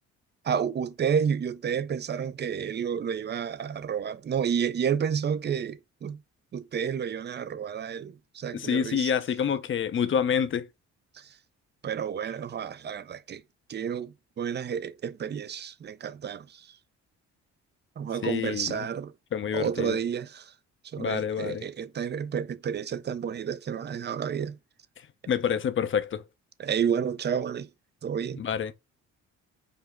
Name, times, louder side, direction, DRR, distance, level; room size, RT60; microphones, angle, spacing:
voice 1, 0.4-6.2 6.5-9.1 11.2-11.3 11.8-13.4 13.7-16.6 18.0-19.1 19.5-20.5 20.9-24.6 26.6-27.7 28.0-28.4, right 7 dB, 35° right, 0.5 m, -30 dB
voice 2, 8.5-10.7 18.2-18.9 19.3-20.0 21.0-21.6 25.3-26.2 28.4-28.7, left 7 dB, 40° left, 0.6 m, -27 dB
5.2 x 2.0 x 3.5 m
cardioid pair, 90°, 30 cm